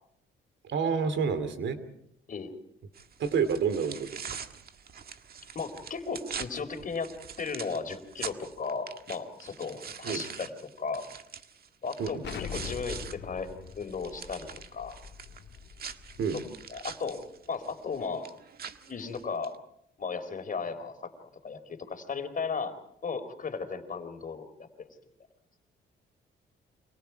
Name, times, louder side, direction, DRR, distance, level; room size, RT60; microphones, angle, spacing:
voice 1, 0.6-1.8 3.2-4.4 10.0-10.2 12.0-12.2 16.2-16.4, right 6 dB, 65° right, 12 dB, 2.9 m, -29 dB
sound 1, 2.9-13.2 13.5-19.6, right 7 dB, 50° right, 1.7 m, -44 dB
voice 2, 5.5-11.1 11.8-15.0 16.3-16.4 16.7-17.2 17.5-18.3 18.9-19.5 20.0-22.7 23.0-24.9, left 5 dB, 40° left, 7 dB, 4.1 m, -36 dB
Explosion, 12.2-16.9, left 7 dB, 60° left, 1.9 m, -43 dB
30.0 x 25.5 x 4.7 m, 0.73 s
cardioid pair, 90°, 20 cm